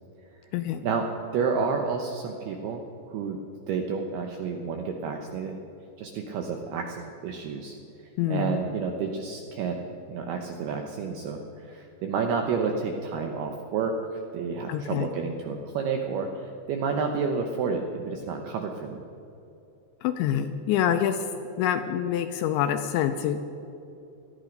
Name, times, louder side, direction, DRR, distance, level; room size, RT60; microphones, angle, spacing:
voice 1, 0.5-0.8 8.2-8.6 14.7-15.1 20.0-21.3 21.6-23.4, left 10 dB, 85° left, 8 dB, 2.7 m, -26 dB
voice 2, 1.3-2.8 3.1-3.4 3.7-5.6 6.0-7.7 8.3-9.8 10.1-19.1, right 5 dB, 80° right, 3 dB, 2.3 m, -30 dB
19.0 x 13.5 x 5.2 m, 2.7 s
omnidirectional pair, 5.7 m